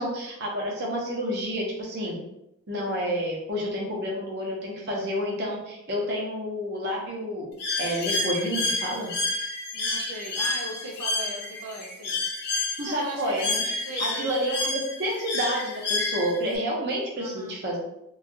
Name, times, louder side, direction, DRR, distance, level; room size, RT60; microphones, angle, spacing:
voice 1, 0.0-2.2 2.7-7.5 7.8-9.1 12.8-13.7 14.0-17.8, equal, 50° right, -3 dB, 0.7 m, -29 dB
Bird, 7.6-16.6, left 2 dB, 45° left, 0.6 m, -29 dB
voice 2, 9.7-12.2 12.8-13.5 13.8-14.4 17.1-17.6, right 2 dB, 85° right, -1 dB, 0.5 m, -38 dB
3.1 x 2.4 x 2.5 m, 0.86 s
head